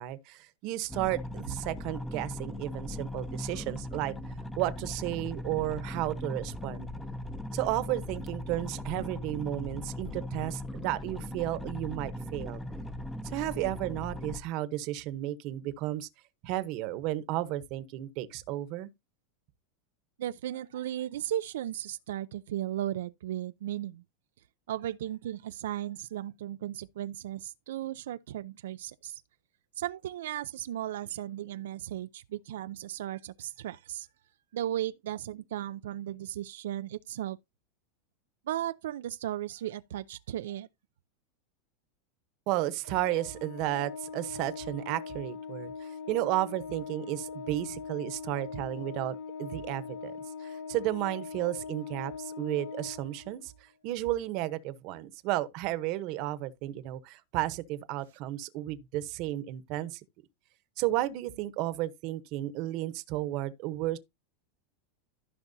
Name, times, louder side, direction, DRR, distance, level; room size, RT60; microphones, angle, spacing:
voice 1, 0.0-4.1 4.6-6.9 7.5-12.6 13.3-16.1 16.4-18.9 42.5-50.1 50.4-53.5 53.8-60.0 60.8-64.0, right 15 dB, 40° right, 0.9 m, -33 dB
sound 1, 0.9-14.4, left 1 dB, 5° left, 0.6 m, -39 dB
voice 2, 20.2-24.0 24.7-29.2 29.8-34.1 34.5-37.4 38.5-40.7, right 12 dB, 90° right, 0.5 m, -36 dB
Organ, 42.8-53.5, left 5 dB, 75° left, 1.4 m, -41 dB
14.5 x 5.9 x 2.7 m
supercardioid pair, 165°, 0 cm